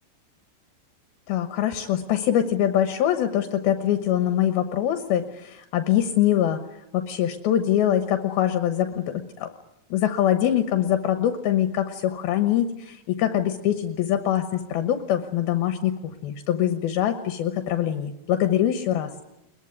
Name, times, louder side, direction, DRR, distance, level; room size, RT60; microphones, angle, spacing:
voice 1, 1.3-6.6 6.9-9.5 9.9-19.1, left 11 dB, 75° left, 8 dB, 2.9 m, -23 dB
22.0 x 21.0 x 9.7 m, 0.88 s
omnidirectional pair, 4.5 m